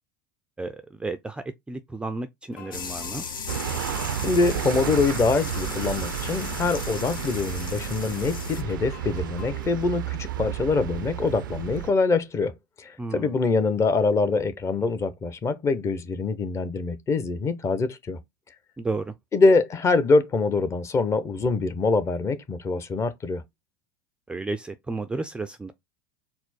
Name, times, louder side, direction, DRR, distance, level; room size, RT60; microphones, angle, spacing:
voice 1, 0.6-3.3 13.0-13.4 18.8-19.1 24.3-25.7, right 3 dB, 10° right, 0.4 m, -32 dB
sound 1, 2.5-9.8, left 6 dB, 50° left, 2.1 m, -46 dB
sound 2, 2.7-8.6, left 5 dB, 90° left, 0.6 m, -36 dB
sound 3, 3.5-11.9, right 11 dB, 80° right, 0.4 m, -32 dB
voice 2, 4.2-12.5 12.8-18.2 19.3-23.4, left 3 dB, 25° left, 0.8 m, -24 dB
4.3 x 2.0 x 4.2 m
hypercardioid pair, 85°, 11 cm